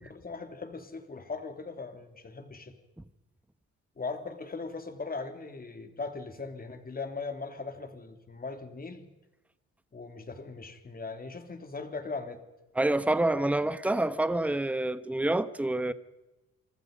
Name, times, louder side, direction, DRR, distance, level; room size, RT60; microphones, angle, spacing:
voice 1, 0.1-2.7 4.0-9.1 9.9-12.4, left 4 dB, 30° left, 3.2 m, -39 dB
voice 2, 12.8-15.9, right 2 dB, 5° right, 1.2 m, -27 dB
26.5 x 25.5 x 5.4 m
cardioid pair, 90°, 30 cm